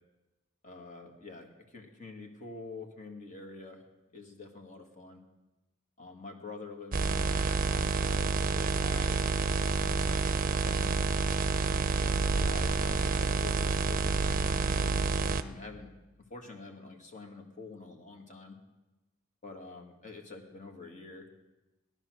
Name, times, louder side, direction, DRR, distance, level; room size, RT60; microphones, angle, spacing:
voice 1, 0.6-3.8 4.1-5.2 6.0-7.4 7.7-11.0 11.7-15.9 16.2-18.6 19.4-21.3, left 3 dB, 35° left, 3 dB, 1.8 m, -47 dB
sound 1, 6.9-15.4, right 4 dB, 40° right, 0.6 m, -28 dB
17.0 x 11.0 x 6.3 m, 1.1 s
head